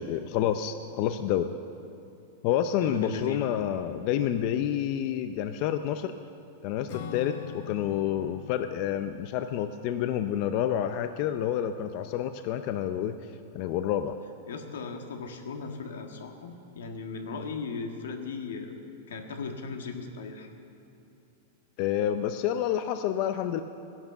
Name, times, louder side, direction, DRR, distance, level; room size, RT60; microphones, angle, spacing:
voice 1, 0.0-1.5 2.4-6.1 6.6-13.2 13.5-14.2 21.8-23.6, left 10 dB, 45° left, 9 dB, 0.5 m, -29 dB
voice 2, 2.8-3.5 14.5-18.8 19.1-20.5, left 4 dB, 90° left, 4 dB, 1.7 m, -37 dB
Acoustic guitar / Strum, 6.9-11.7, left 9 dB, 60° left, 0.9 m, -44 dB
15.0 x 11.0 x 6.9 m, 2.6 s
supercardioid pair, 145°, 0 cm